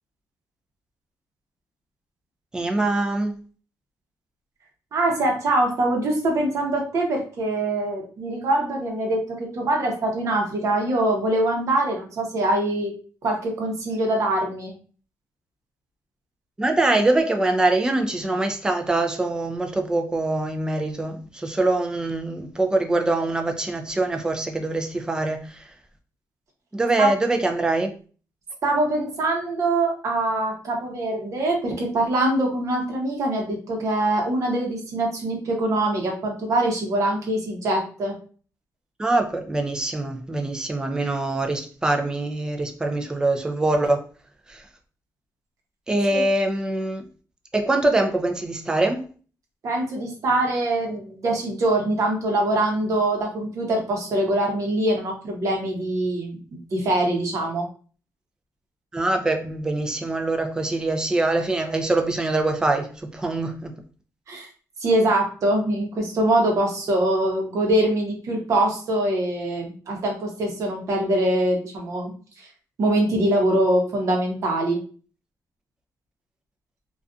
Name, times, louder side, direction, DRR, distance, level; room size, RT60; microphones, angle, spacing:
voice 1, 2.5-3.4 16.6-25.6 26.7-27.9 39.0-44.1 44.5-44.6 45.9-47.1 47.5-49.1 58.9-63.7, right 2 dB, 10° right, 0.4 m, -24 dB
voice 2, 4.9-12.9 13.2-14.7 27.0-27.1 28.6-38.1 46.1-46.2 49.6-57.7 64.3-64.5 64.8-72.1 72.4-72.5 72.8-74.8, right 1 dB, 55° right, 0.8 m, -23 dB
2.5 x 2.3 x 2.4 m
cardioid pair, 150°, 6 cm